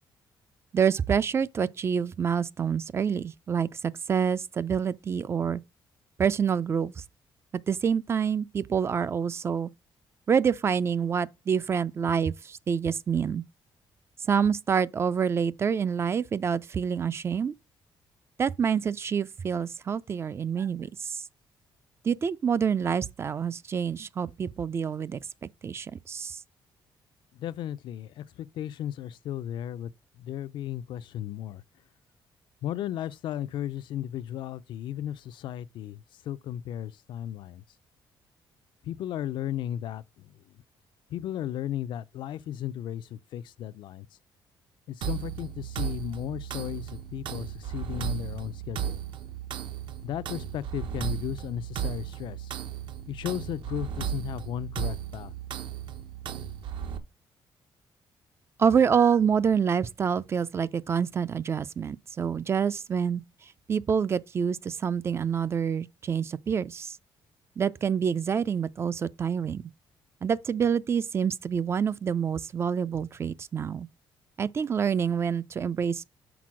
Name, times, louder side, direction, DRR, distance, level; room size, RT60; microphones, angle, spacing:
voice 1, 0.7-5.6 6.2-7.0 7.5-9.7 10.3-13.4 14.3-17.5 18.4-21.2 22.0-26.4 58.6-63.2 63.7-67.0 67.6-69.6 70.2-73.9 74.4-76.0, right 7 dB, 30° right, 0.3 m, -27 dB
voice 2, 27.3-29.9 30.2-31.6 32.6-37.6 38.8-40.4 41.1-44.1 44.9-49.0 50.0-52.5 53.1-55.3, left 11 dB, 70° left, 0.4 m, -35 dB
sound 1, 45.0-57.0, right 9 dB, 70° right, 0.9 m, -35 dB
6.0 x 4.4 x 6.1 m
cardioid pair, 150°, 8 cm